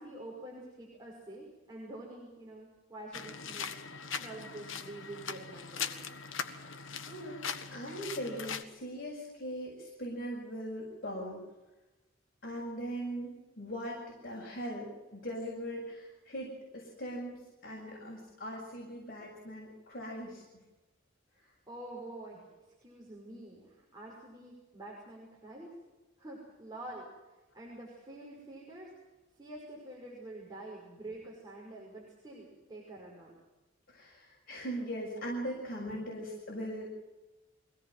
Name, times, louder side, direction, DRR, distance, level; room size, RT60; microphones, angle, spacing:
voice 1, 0.0-6.1 21.7-22.5 22.8-25.7 26.2-27.0 27.5-28.9 29.4-33.3, right 1 dB, 20° right, -4 dB, 5.6 m, -47 dB
sound 1, 3.1-8.6, left 6 dB, 80° left, 1.5 m, -40 dB
voice 2, 6.4-11.4 12.4-20.6 33.9-36.9, equal, 50° left, -3 dB, 6.9 m, -40 dB
24.0 x 17.5 x 7.6 m, 1.1 s
head